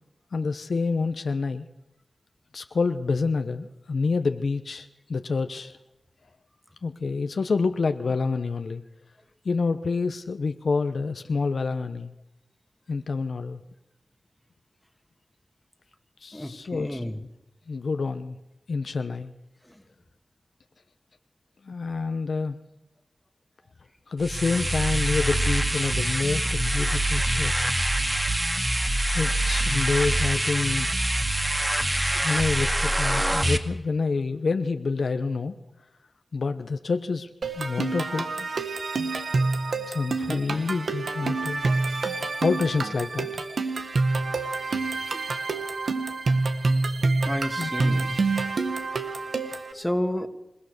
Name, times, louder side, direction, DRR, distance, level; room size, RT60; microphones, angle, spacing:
voice 1, 0.3-1.7 2.5-5.8 6.8-8.8 9.4-12.1 12.9-13.6 16.2-17.0 17.7-18.4 18.7-19.3 21.6-22.6 24.1-27.7 29.1-30.9 32.2-35.5 36.3-37.3 37.6-38.5 39.9-41.7 42.4-43.4 47.6-47.7, left 4 dB, 75° left, 8 dB, 0.9 m, -27 dB
voice 2, 16.3-17.2 19.6-19.8 40.3-40.8 47.2-48.2 49.7-50.3, left 1 dB, 10° left, 7 dB, 2.0 m, -31 dB
sound 1, 24.2-33.6, right 1 dB, 25° right, 2.1 m, -25 dB
sound 2, 37.4-49.7, right 3 dB, 75° right, 1.7 m, -27 dB
27.5 x 16.0 x 6.7 m, 0.93 s
cardioid pair, 45°, 0 cm